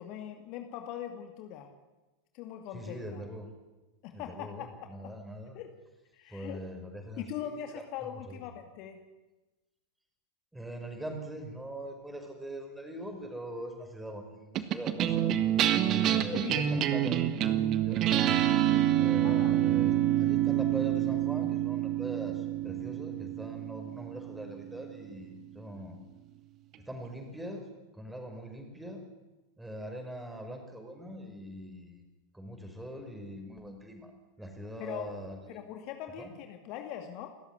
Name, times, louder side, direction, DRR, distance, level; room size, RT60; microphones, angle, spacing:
voice 1, 0.0-1.7 2.3-3.2 4.0-4.7 5.0-5.1 5.5-5.7 6.1-6.6 7.2-9.0 16.1-16.9 19.2-19.6 34.8-35.1 35.5-37.3, left 10 dB, 40° left, 5 dB, 2.3 m, -41 dB
voice 2, 2.7-3.5 4.1-5.6 6.3-8.4 10.5-15.3 15.8-17.2 17.8-18.4 18.9-26.0 26.9-27.7 27.9-29.0 29.6-32.1 32.3-34.1 34.4-35.6 36.2-36.3, right 1 dB, 5° right, 5 dB, 5.5 m, -42 dB
sound 1, 14.6-25.2, right 12 dB, 35° right, 1.7 m, -27 dB
29.0 x 14.5 x 9.9 m, 1.1 s
figure-of-eight pair, 90°, 0 cm